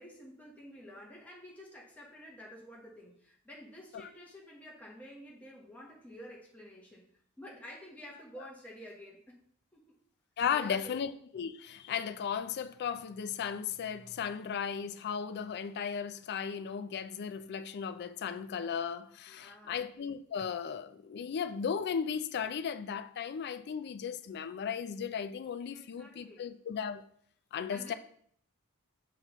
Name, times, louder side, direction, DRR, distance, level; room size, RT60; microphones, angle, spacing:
voice 1, 0.0-9.4 9.7-10.0 10.5-11.0 19.3-19.8 25.7-26.5 27.7-27.9, equal, 5° left, 1.1 m, -50 dB
voice 2, 10.4-27.0 27.5-27.9, left 7 dB, 50° left, 0.4 m, -36 dB
6.7 x 5.7 x 3.0 m
head